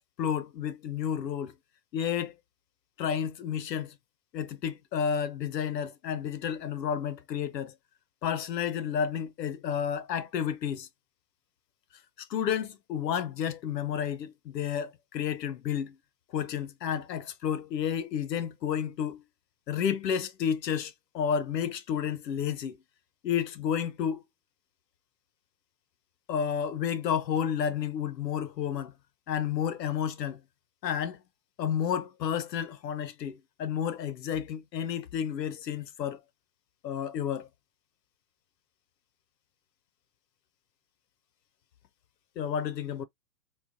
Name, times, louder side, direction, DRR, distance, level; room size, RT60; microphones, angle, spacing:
voice 1, 0.0-1.5 1.9-2.3 3.0-4.0 4.3-7.7 8.2-10.9 12.2-16.0 16.3-19.2 19.7-22.8 23.2-24.2 26.3-28.9 29.3-30.4 30.8-31.2 31.6-36.2 36.8-37.5 42.4-43.0, left 8 dB, 80° left, 0.6 m, -31 dB
3.1 x 2.2 x 2.5 m
hypercardioid pair, 115°, 49 cm